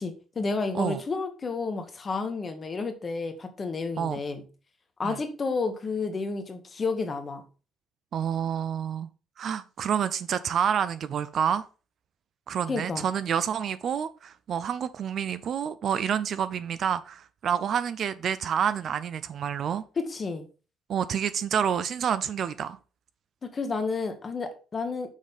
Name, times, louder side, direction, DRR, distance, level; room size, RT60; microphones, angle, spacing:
voice 1, 0.0-4.4 5.0-7.4 12.7-13.0 20.0-20.5 23.4-25.1, left 4 dB, 25° left, 1.2 m, -31 dB
voice 2, 8.1-9.1 9.4-11.6 12.5-19.8 20.9-22.8, right 8 dB, 40° right, 0.4 m, -28 dB
6.4 x 5.2 x 5.4 m
cardioid pair, 180°, 0 cm